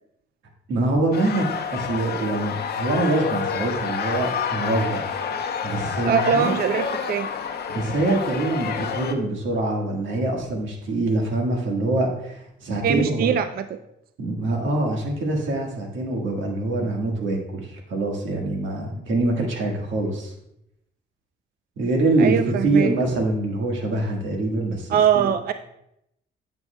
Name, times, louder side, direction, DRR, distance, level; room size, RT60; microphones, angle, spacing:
voice 1, 0.7-1.4 1.7-5.0 5.6-6.5 7.7-13.3 14.2-20.3 21.8-22.4 22.6-25.3, right 2 dB, 75° right, 1 dB, 1.6 m, -24 dB
sound 1, 1.1-9.1, left 7 dB, 55° left, 0.7 m, -28 dB
voice 2, 6.1-7.3 12.8-13.8 22.2-22.9 24.9-25.5, right 8 dB, 50° right, 10 dB, 0.4 m, -22 dB
9.6 x 6.9 x 2.2 m, 0.79 s
cardioid pair, 90°, 20 cm